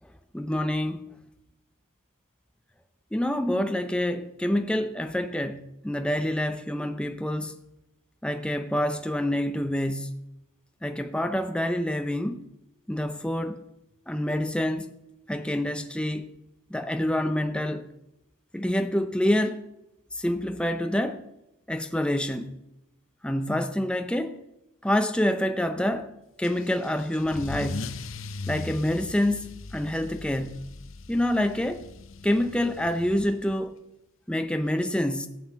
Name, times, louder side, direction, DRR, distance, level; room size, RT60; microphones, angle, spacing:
voice 1, 0.3-1.1 3.1-7.6 8.2-10.2 10.8-12.4 12.9-13.6 14.1-14.9 15.3-16.3 16.7-17.9 18.5-19.6 20.1-21.2 21.7-22.6 23.2-24.4 24.8-26.1 26.4-27.9 28.5-30.6 31.1-31.9 32.2-33.8 34.3-35.3, left 1 dB, 5° left, 0.5 m, -27 dB
Car / Engine starting / Accelerating revving vroom, 26.4-33.6, left 3 dB, 65° left, 0.7 m, -39 dB
14.5 x 8.6 x 7.0 m
head